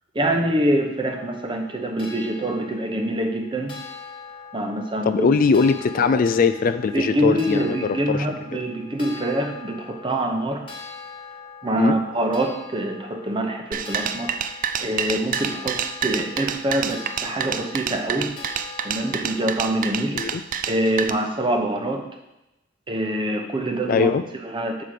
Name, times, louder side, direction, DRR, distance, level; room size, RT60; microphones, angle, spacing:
voice 1, 0.1-3.8 4.5-5.3 6.0-6.2 6.9-10.6 11.6-18.4 18.8-20.2 20.7-22.0 22.9-24.1 24.4-24.8, right 1 dB, 25° right, 4 dB, 0.8 m, -25 dB
sound 1, 1.1-20.5, left 5 dB, 25° left, 1.5 m, -42 dB
voice 2, 5.1-8.3 11.8-12.0 20.1-20.4 23.9-24.2, left 5 dB, 45° left, 10 dB, 0.3 m, -20 dB
sound 2, 13.7-21.1, right 8 dB, 45° right, 0.4 m, -28 dB
6.6 x 4.8 x 5.9 m, 0.94 s
head